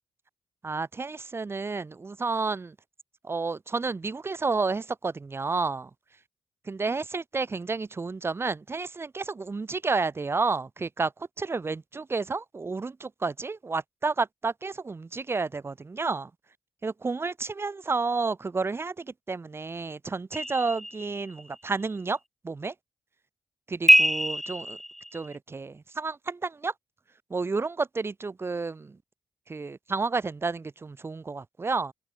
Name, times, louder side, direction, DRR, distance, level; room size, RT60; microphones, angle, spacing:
voice 1, 0.6-2.7 3.2-5.9 6.6-11.1 11.4-16.3 16.8-22.2 22.4-22.7 23.7-24.8 25.1-26.7 27.3-29.0 29.5-31.9, right 4 dB, 40° right, 1.4 m, -31 dB
sound 1, 20.3-21.6 23.9-25.4, equal, 5° left, 1.2 m, -24 dB
supercardioid pair, 40°, 6 cm